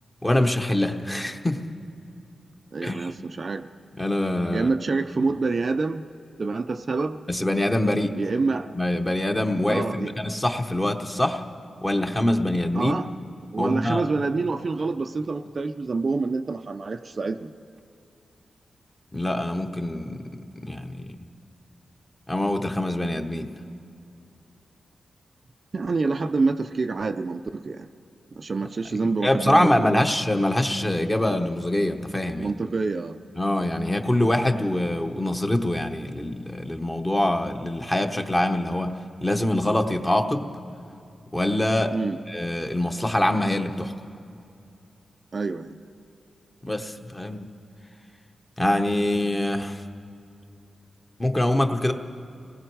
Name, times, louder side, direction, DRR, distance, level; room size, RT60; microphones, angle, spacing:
voice 1, 0.2-1.6 2.8-3.1 4.0-4.7 7.3-8.2 8.7-11.4 11.8-13.0 13.6-14.1 19.1-20.3 20.6-21.1 22.3-23.5 29.2-32.5 33.4-40.5 41.3-41.9 42.3-43.9 46.6-47.5 48.6-49.8 51.2-51.9, left 1 dB, 10° left, 5 dB, 1.0 m, -24 dB
voice 2, 2.7-3.7 4.5-6.0 6.4-7.2 8.2-8.7 9.7-10.1 12.7-13.1 13.5-17.5 25.7-27.9 28.3-30.0 32.4-33.2 41.9-42.2 45.3-45.8, right 3 dB, 40° right, 7 dB, 0.5 m, -27 dB
30.0 x 19.5 x 4.7 m, 2.6 s
wide cardioid pair, 145°, 0 cm